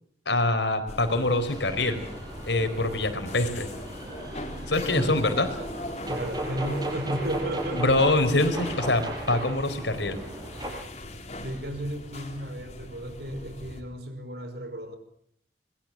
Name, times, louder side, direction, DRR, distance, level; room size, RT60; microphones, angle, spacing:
voice 1, 0.3-2.0 2.5-3.7 4.7-5.5 7.7-10.2, left 2 dB, 80° left, 8 dB, 4.4 m, -24 dB
sound 1, 0.9-13.8, left 1 dB, 40° left, 3.9 m, -40 dB
sound 2, 1.5-10.7, right 1 dB, 25° right, 6.5 m, -37 dB
voice 2, 4.8-5.2 6.1-8.1 11.4-15.0, equal, 65° right, 9 dB, 5.3 m, -34 dB
26.0 x 22.0 x 7.6 m, 0.67 s
head